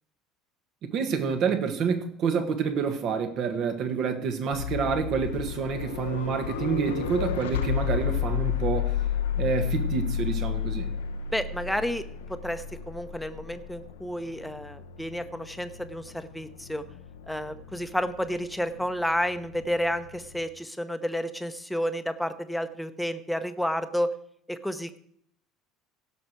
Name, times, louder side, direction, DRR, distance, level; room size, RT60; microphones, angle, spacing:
voice 1, 0.8-9.0 9.4-10.9, right 6 dB, 50° right, 7 dB, 1.6 m, -28 dB
sound 1, 4.5-20.4, left 9 dB, 70° left, 0.8 m, -32 dB
voice 2, 11.3-12.0 12.3-16.8 17.3-24.1 24.5-25.0, equal, 5° left, 9 dB, 1.0 m, -31 dB
16.5 x 6.5 x 4.7 m, 0.66 s
figure-of-eight pair, 65°, 0 cm